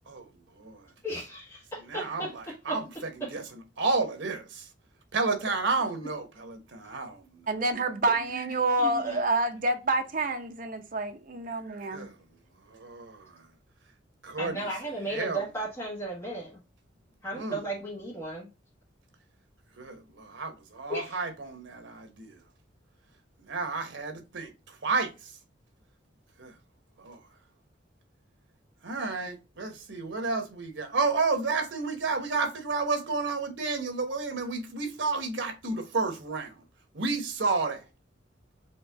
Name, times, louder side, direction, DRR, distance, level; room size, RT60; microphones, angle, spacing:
voice 1, 0.1-0.9 1.9-4.7 5.1-7.5 11.9-12.2 12.6-13.5 14.2-14.7 15.1-15.4 17.3-17.6 19.8-22.4 23.4-25.4 26.4-26.6 27.0-27.2 28.8-36.6 36.9-37.9, right 3 dB, 80° right, 1.1 m, -31 dB
voice 2, 1.0-2.3 2.7-2.8 8.8-9.2 14.4-16.6 17.2-18.5 20.9-21.2, right 1 dB, 15° left, 1.5 m, -35 dB
voice 3, 7.5-12.1, right 2 dB, 45° right, 0.7 m, -28 dB
4.4 x 2.9 x 3.4 m
head